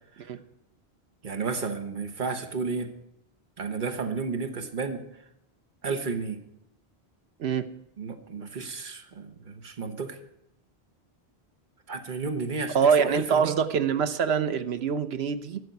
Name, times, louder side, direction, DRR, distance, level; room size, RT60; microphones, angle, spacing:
voice 1, 1.2-2.9 3.6-5.0 5.8-6.4 8.0-10.2 11.9-13.5, right 4 dB, 50° right, 6 dB, 1.4 m, -32 dB
voice 2, 12.7-15.6, right 6 dB, 80° right, 11 dB, 1.1 m, -24 dB
12.5 x 6.9 x 9.2 m, 0.82 s
omnidirectional pair, 1.1 m